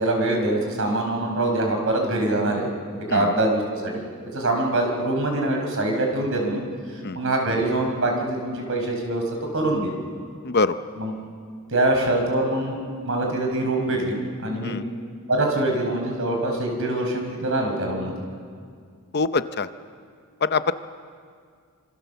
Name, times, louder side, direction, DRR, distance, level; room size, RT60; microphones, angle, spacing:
voice 1, 0.0-2.7 3.0-6.6 7.1-9.9 10.9-11.1 11.7-14.8 15.3-18.1, right 1 dB, 60° right, 2 dB, 5.0 m, -24 dB
voice 2, 10.4-10.7 14.6-14.8 19.1-19.7 20.4-20.7, left 4 dB, 45° left, 11 dB, 0.7 m, -23 dB
26.5 x 25.5 x 7.0 m, 2.1 s
head